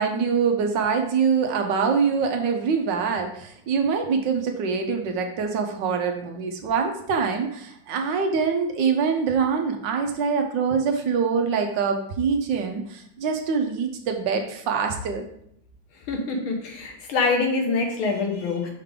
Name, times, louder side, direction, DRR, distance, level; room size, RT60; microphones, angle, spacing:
voice 1, 0.0-15.2, right 5 dB, 70° right, 4 dB, 1.4 m, -24 dB
voice 2, 16.1-18.7, left 3 dB, 85° left, 2 dB, 2.0 m, -25 dB
5.7 x 5.1 x 3.6 m, 0.69 s
omnidirectional pair, 2.2 m